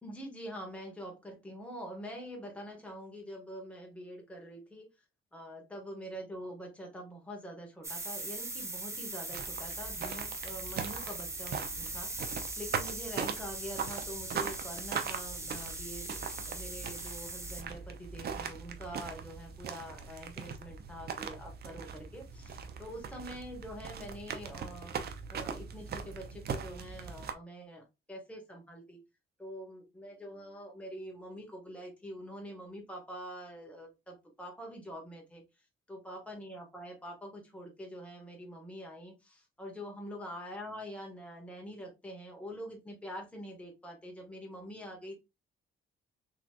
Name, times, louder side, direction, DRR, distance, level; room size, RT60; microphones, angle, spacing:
voice 1, 0.0-4.9 5.3-25.0 25.3-29.0 29.4-35.4 35.9-45.2, equal, 5° left, 1 dB, 1.3 m, -45 dB
sound 1, 7.8-17.6, right 2 dB, 15° right, 0.7 m, -40 dB
sound 2, 9.3-27.3, right 6 dB, 55° right, 0.7 m, -40 dB
3.8 x 3.1 x 2.2 m, 0.23 s
cardioid pair, 90°, 20 cm